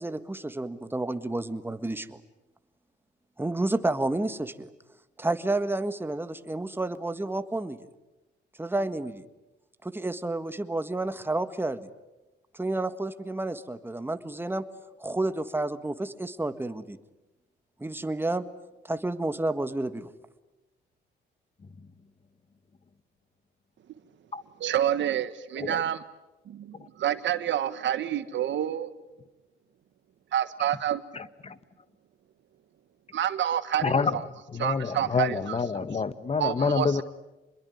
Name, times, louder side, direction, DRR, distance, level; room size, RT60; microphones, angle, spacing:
voice 1, 0.0-2.2 3.4-4.7 5.2-7.8 8.6-9.2 9.8-11.9 12.5-14.6 15.0-17.0 17.8-18.5 18.8-20.1, right 2 dB, 10° right, 11 dB, 1.6 m, -30 dB
voice 2, 24.6-26.0 26.5-28.9 30.3-31.0 33.1-34.3 34.6-35.6 36.4-37.0, right 10 dB, 70° right, 13 dB, 1.5 m, -28 dB
voice 3, 31.1-31.6 33.8-34.2 34.5-37.0, left 4 dB, 30° left, 15 dB, 1.1 m, -27 dB
27.0 x 22.0 x 9.5 m, 1.0 s
cardioid pair, 90°, 20 cm